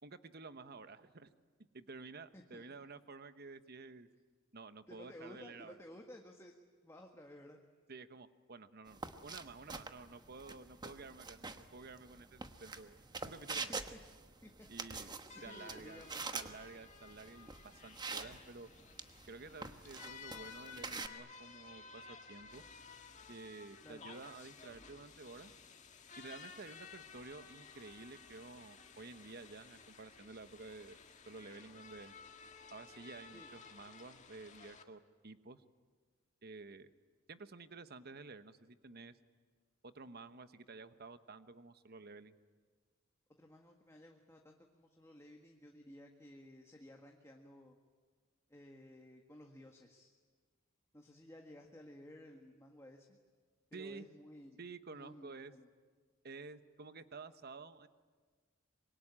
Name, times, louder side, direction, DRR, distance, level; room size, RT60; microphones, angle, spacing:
voice 1, 0.0-1.3 1.7-4.1 4.5-5.8 7.9-13.7 14.7-15.1 15.4-16.0 16.3-18.7 19.3-22.6 23.3-25.5 26.2-31.0 31.3-32.1 32.7-35.6 36.4-36.9 37.3-39.1 39.8-42.4 53.7-54.1 54.6-55.5 56.2-57.9, right 3 dB, 50° right, 11 dB, 1.1 m, -51 dB
voice 2, 2.3-2.6 4.9-6.5 6.8-7.6 13.7-14.0 14.4-14.5 14.8-16.3 23.8-24.1 33.3-33.5 43.4-47.8 48.5-50.1 50.9-53.2 53.7-54.6 54.9-55.7, left 1 dB, 15° left, 2 dB, 1.7 m, -55 dB
sound 1, 8.9-21.1, right 4 dB, 20° right, 1.1 m, -46 dB
sound 2, 15.3-34.8, left 5 dB, 35° left, 1.8 m, -55 dB
25.5 x 23.0 x 9.9 m, 1.5 s
head